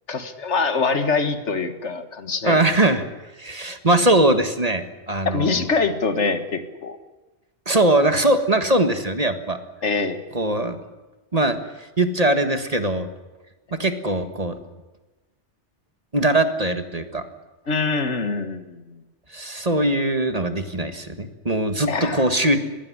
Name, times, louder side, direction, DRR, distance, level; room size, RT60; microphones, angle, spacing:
voice 1, 0.1-2.6 5.3-7.0 9.8-10.2 17.7-18.8 19.5-19.6 21.9-22.2, left 4 dB, 75° left, 9 dB, 1.9 m, -24 dB
voice 2, 2.4-3.0 3.4-5.6 7.6-9.6 10.3-10.8 11.3-13.1 13.7-14.6 16.1-17.2 19.3-22.6, right 1 dB, 30° right, 8 dB, 1.7 m, -21 dB
20.5 x 16.5 x 9.7 m, 1.2 s
omnidirectional pair, 1.2 m